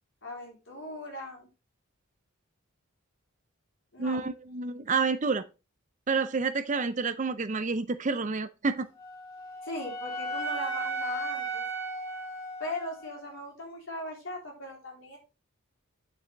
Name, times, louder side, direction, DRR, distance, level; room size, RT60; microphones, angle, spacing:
voice 1, 0.2-1.5 3.9-4.2 9.6-11.6 12.6-15.2, left 1 dB, 60° left, 4.0 m, -39 dB
voice 2, 4.0-5.4 6.1-8.9, right 4 dB, 35° right, 0.5 m, -29 dB
Wind instrument woodwind instrument, 9.0-13.2, right 2 dB, 15° left, 5.2 m, -35 dB
9.2 x 6.8 x 3.4 m
head